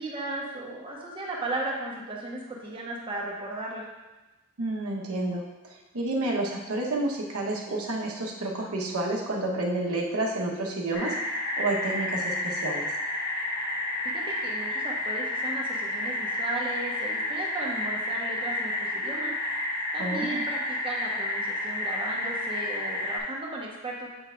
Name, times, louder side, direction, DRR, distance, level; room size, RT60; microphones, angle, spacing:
voice 1, 0.0-3.9 14.0-19.3 19.9-24.1, right 2 dB, 25° right, -3 dB, 1.1 m, -35 dB
voice 2, 4.6-11.2 11.6-12.9 20.0-20.4, right 2 dB, 80° right, -1 dB, 1.0 m, -30 dB
sound 1, 10.9-23.2, left 1 dB, 50° left, 1.2 m, -30 dB
8.0 x 5.5 x 2.4 m, 1.1 s
head